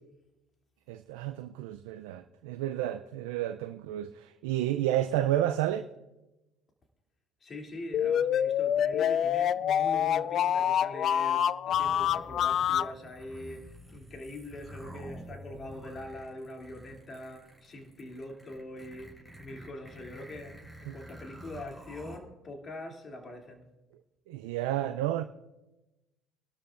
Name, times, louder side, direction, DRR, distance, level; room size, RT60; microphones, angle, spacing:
voice 1, 0.9-5.9 20.9-21.0 24.3-25.2, right 12 dB, 80° right, 0.4 m, -31 dB
voice 2, 7.4-23.7, left 1 dB, 40° left, 2.9 m, -43 dB
sound 1, 7.9-12.9, left 9 dB, 55° left, 0.3 m, -26 dB
sound 2, 11.7-22.2, right 1 dB, 10° left, 5.1 m, -49 dB
24.0 x 12.5 x 2.5 m
hypercardioid pair, 65°, 0 cm